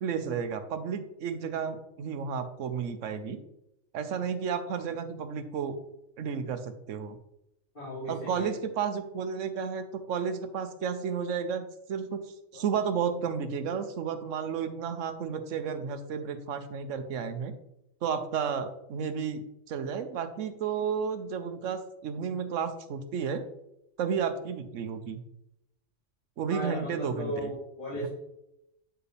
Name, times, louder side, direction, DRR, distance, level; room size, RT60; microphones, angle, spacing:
voice 1, 0.0-3.4 3.9-5.8 6.2-7.2 8.0-12.2 12.5-17.5 18.0-23.5 24.0-25.2 26.4-27.5, right 6 dB, 80° right, 9 dB, 1.1 m, -32 dB
voice 2, 7.7-8.5 12.5-12.6 26.5-28.1, equal, 45° left, -11 dB, 3.1 m, -36 dB
8.8 x 4.6 x 3.3 m, 0.85 s
omnidirectional pair, 1.3 m